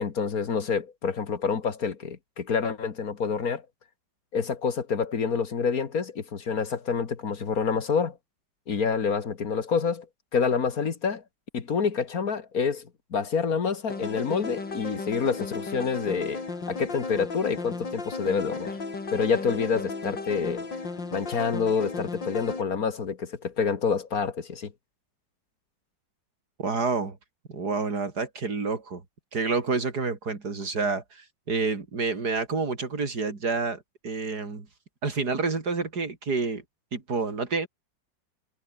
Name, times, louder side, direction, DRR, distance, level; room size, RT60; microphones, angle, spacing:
voice 1, 0.0-3.6 4.3-8.2 8.7-10.1 10.3-11.2 11.5-18.8 19.1-20.7 21.1-24.7, left 5 dB, 50° left, 2.2 m, -27 dB
sound 1, 13.9-22.6, left 3 dB, 70° left, 4.9 m, -35 dB
voice 2, 26.6-27.2 27.5-29.0 29.3-34.7 35.0-36.6 36.9-37.7, right 4 dB, 55° right, 3.9 m, -28 dB
omnidirectional pair, 2.0 m